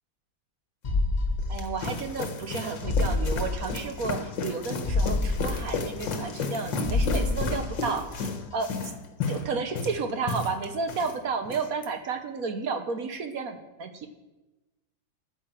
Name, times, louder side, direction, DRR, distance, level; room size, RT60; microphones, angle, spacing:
sound 1, 0.8-2.2 2.5-2.6 2.8-4.2 4.5-4.6 4.8-6.6 6.8-8.2 8.5-8.6, left 2 dB, 25° left, 0.9 m, -28 dB
sound 2, 1.2-11.1 11.4-11.9, left 4 dB, 70° left, 2.0 m, -33 dB
voice 1, 1.5-8.9 9.3-14.1, right 4 dB, 55° right, 7 dB, 1.3 m, -32 dB
11.0 x 9.8 x 7.6 m, 1.1 s
omnidirectional pair, 2.1 m